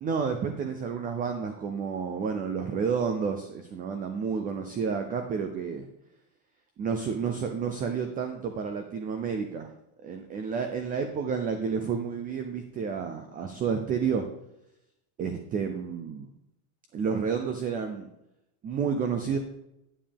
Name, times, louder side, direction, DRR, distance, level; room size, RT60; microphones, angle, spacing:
voice 1, 0.0-5.9 6.8-9.7 10.0-14.2 15.2-16.3 16.9-18.1 18.6-19.4, right 6 dB, 20° right, 6 dB, 0.4 m, -30 dB
11.0 x 7.4 x 3.4 m, 0.88 s
cardioid pair, 160°, 46 cm